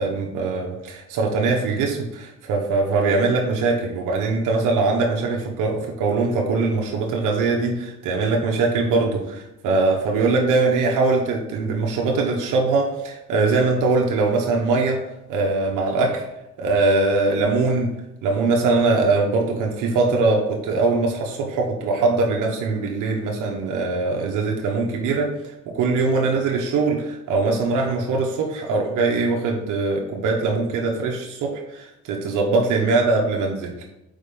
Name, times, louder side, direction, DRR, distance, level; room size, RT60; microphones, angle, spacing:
voice 1, 0.0-15.0 15.3-16.2 16.6-17.9 18.2-33.8, right 3 dB, 90° right, 0 dB, 1.0 m, -22 dB
5.2 x 4.6 x 5.2 m, 0.90 s
cardioid pair, 90°, 30 cm